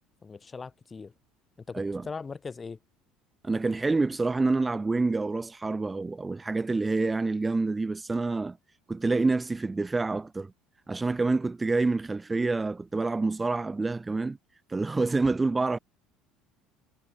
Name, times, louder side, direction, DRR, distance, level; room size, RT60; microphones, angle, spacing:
voice 1, 0.2-1.1 1.7-2.8, left 4 dB, 15° left, 2.8 m, -40 dB
voice 2, 3.4-8.6 8.9-10.5 10.9-14.4 14.7-15.8, right 3 dB, 10° right, 1.6 m, -27 dB
cardioid pair, 155°, 0 cm